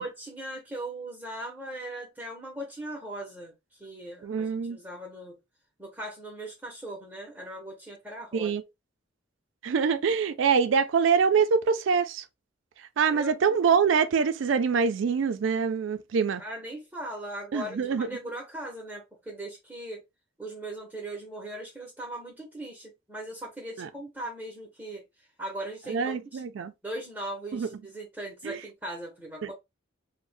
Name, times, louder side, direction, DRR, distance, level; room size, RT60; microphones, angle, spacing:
voice 1, 0.0-3.5 3.8-5.4 5.8-8.5 13.1-13.4 16.4-20.1 20.4-25.0 25.4-26.4 26.8-29.5, right 1 dB, 10° right, 0.7 m, -39 dB
voice 2, 4.2-4.8 8.3-8.6 9.6-12.2 13.0-16.4 17.5-18.1 23.8-23.9 25.9-26.7 27.5-27.7 28.4-28.6 29.4-29.5, right 6 dB, 70° right, 0.3 m, -25 dB
2.6 x 2.1 x 3.1 m
head